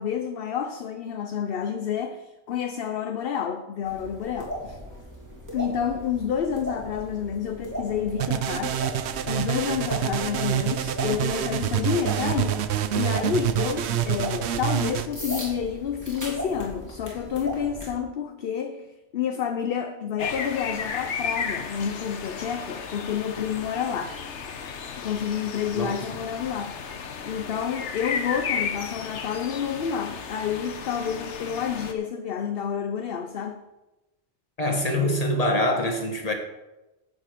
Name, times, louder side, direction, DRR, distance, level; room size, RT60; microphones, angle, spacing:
voice 1, 0.0-4.8 5.5-24.2 25.0-33.6, left 8 dB, 60° left, 0.9 m, -29 dB
sound 1, 3.8-17.9, equal, 15° right, 3.1 m, -37 dB
sound 2, 8.2-15.1, right 11 dB, 75° right, 0.9 m, -27 dB
sound 3, 20.2-31.9, left 6 dB, 90° left, 1.2 m, -34 dB
voice 2, 34.6-36.3, left 1 dB, 35° left, 1.7 m, -24 dB
11.0 x 8.4 x 5.2 m
omnidirectional pair, 1.2 m